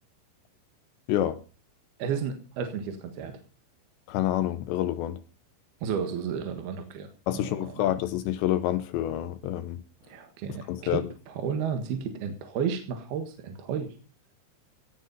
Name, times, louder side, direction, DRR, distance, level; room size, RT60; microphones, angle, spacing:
voice 1, 2.0-3.3 5.8-7.1 7.3-7.8 10.1-13.9, right 7 dB, 60° right, 3.2 m, -32 dB
voice 2, 4.1-5.2 7.3-9.8 10.7-11.0, left 13 dB, 75° left, 2.8 m, -28 dB
17.5 x 10.0 x 5.5 m
omnidirectional pair, 5.5 m